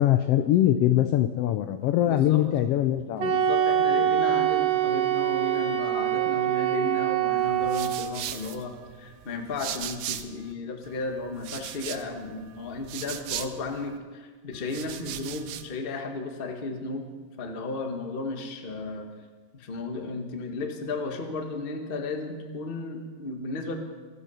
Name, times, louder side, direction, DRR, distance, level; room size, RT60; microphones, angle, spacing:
voice 1, 0.0-3.3, left 12 dB, 85° left, 10 dB, 1.3 m, -22 dB
voice 2, 2.0-2.4 3.3-8.7 9.0-17.1 17.4-19.1 19.5-23.7, left 3 dB, 40° left, 4 dB, 0.7 m, -34 dB
Wind instrument woodwind instrument, 3.2-8.1, right 11 dB, 65° right, 2.1 m, -24 dB
sound 1, 7.4-10.5 10.8-14.0 14.5-15.8, right 11 dB, 85° right, 2.2 m, -39 dB
24.0 x 8.4 x 5.6 m, 1.5 s
omnidirectional pair, 3.4 m